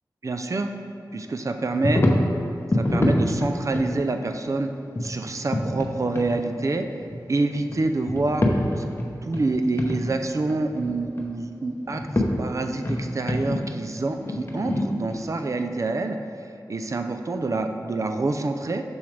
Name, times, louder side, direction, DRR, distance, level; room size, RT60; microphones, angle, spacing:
voice 1, 0.2-0.7 1.1-2.0 2.7-4.7 5.0-6.9 7.3-8.5 8.8-8.9 9.2-12.0 12.4-16.2 16.7-18.8, right 3 dB, 45° right, 6 dB, 0.4 m, -26 dB
sound 1, 1.8-2.3 2.7-3.9 4.9-5.9 6.1-6.3 7.0-7.8 8.1-9.5 9.8-10.0 10.3-11.3 11.8-12.2 12.6-15.3, left 1 dB, 35° left, 0.8 m, -25 dB
7.0 x 6.3 x 3.3 m, 2.6 s
wide cardioid pair, 85°, 7 cm